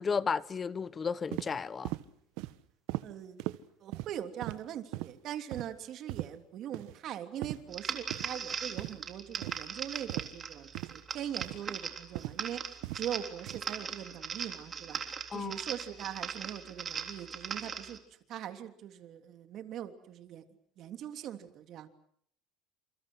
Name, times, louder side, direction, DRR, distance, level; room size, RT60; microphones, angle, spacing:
voice 1, 0.0-1.9 15.3-15.6, left 5 dB, 20° left, 1.1 m, -33 dB
sound 1, 1.3-1.5 1.8-2.0 2.4-2.5 2.9-3.1 3.4-3.6 3.9-4.1 4.4-4.6 4.9-5.1 5.5-5.7 6.1-6.3 6.7-6.9 7.4-7.6 8.1-8.3 8.8-9.0 9.4-9.6 10.1-10.3 10.7-10.9 11.4-11.6 12.2-12.4 12.8-13.0 13.5-13.6, right 18 dB, 75° right, 1.5 m, -37 dB
voice 2, 3.0-3.4 3.8-12.6 12.9-15.0 15.3-18.0 18.3-20.4 20.8-21.9, right 10 dB, 45° right, 3.1 m, -41 dB
sound 2, 7.7-18.0, right 6 dB, 25° right, 3.5 m, -39 dB
29.5 x 28.0 x 6.4 m
cardioid pair, 150°, 0 cm